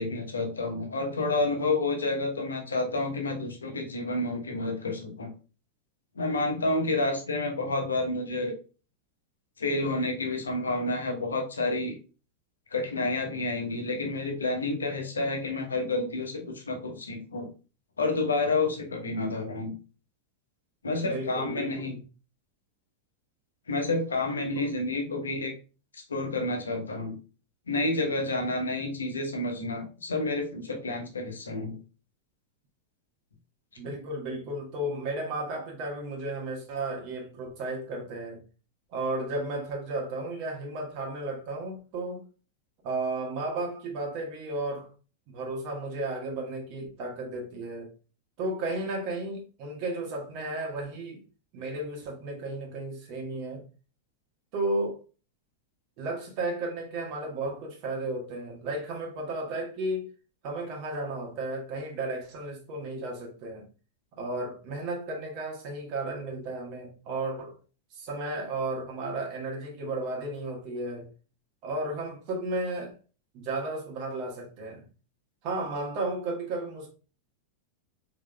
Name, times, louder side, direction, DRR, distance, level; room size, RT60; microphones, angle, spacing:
voice 1, 0.0-5.3 6.2-8.5 9.6-12.0 12.7-17.5 18.0-19.7 20.8-22.0 23.7-25.5 25.9-27.2 27.7-31.8, left 2 dB, 75° left, 1.0 m, -29 dB
voice 2, 21.0-22.0 24.5-24.7 33.8-38.4 38.9-42.2 42.8-44.9 45.3-47.9 48.4-51.2 51.5-53.6 54.5-55.0 56.0-60.1 60.4-63.6 64.2-67.5 67.9-71.1 71.6-72.9 73.3-74.8 75.4-76.9, right 2 dB, 45° right, 1.6 m, -33 dB
4.9 x 3.9 x 2.3 m
figure-of-eight pair, 90°, 0 cm